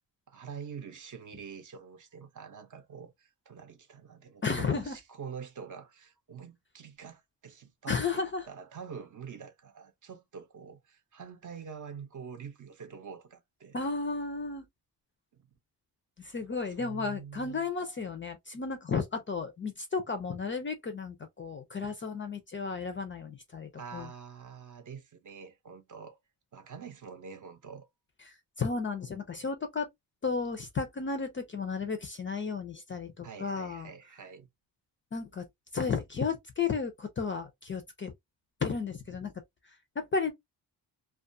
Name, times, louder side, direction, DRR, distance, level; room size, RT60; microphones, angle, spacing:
voice 1, 0.3-13.8 15.3-15.5 16.6-17.7 23.8-26.2 26.5-27.9 33.2-34.5, right 6 dB, 45° right, 0.6 m, -46 dB
voice 2, 4.4-5.0 7.9-8.5 13.7-14.7 16.2-24.1 28.6-29.9 30.2-33.9 35.1-35.4 35.7-38.1 38.6-39.3 40.0-40.3, left 5 dB, 30° left, 0.4 m, -33 dB
2.3 x 2.2 x 2.5 m
cardioid pair, 125°, 43 cm